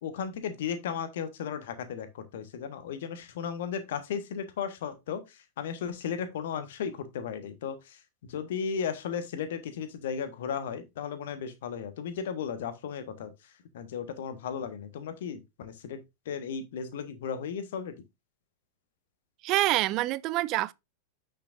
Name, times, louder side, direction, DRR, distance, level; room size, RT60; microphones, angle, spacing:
voice 1, 0.0-5.2 5.6-7.8 8.3-13.3 13.7-16.0 16.3-17.9, left 7 dB, 55° left, 1.3 m, -35 dB
voice 2, 19.4-20.7, right 17 dB, 40° right, 0.4 m, -26 dB
8.2 x 6.6 x 2.6 m
figure-of-eight pair, 90°, 0 cm